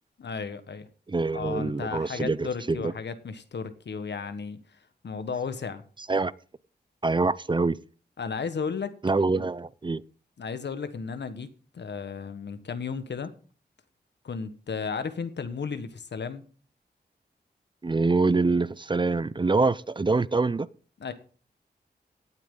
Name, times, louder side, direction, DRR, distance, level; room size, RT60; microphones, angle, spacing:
voice 1, 0.2-0.9 1.3-4.6 5.0-5.8 8.2-8.9 9.3-9.5 10.4-11.5 11.7-13.3 14.2-16.4 21.0-21.1, left 5 dB, 80° left, 1.4 m, -34 dB
voice 2, 1.1-2.9 6.1-6.3 7.0-7.8 9.0-10.0 17.8-20.7, right 3 dB, 25° right, 0.5 m, -25 dB
17.0 x 8.8 x 3.8 m
wide cardioid pair, 90°, 18 cm